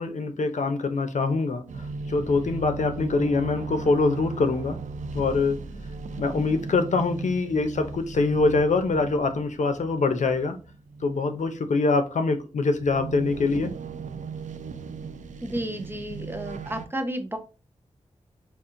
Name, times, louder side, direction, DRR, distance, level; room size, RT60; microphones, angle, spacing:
voice 1, 0.0-1.6 2.1-4.8 5.1-5.6 6.2-10.6 11.0-13.7, left 3 dB, 80° left, 0.7 m, -24 dB
sound 1, 1.7-16.9, right 3 dB, 90° right, 0.5 m, -37 dB
voice 2, 15.4-17.4, right 1 dB, 20° right, 0.7 m, -32 dB
5.3 x 2.5 x 2.5 m
wide cardioid pair, 100°, 12 cm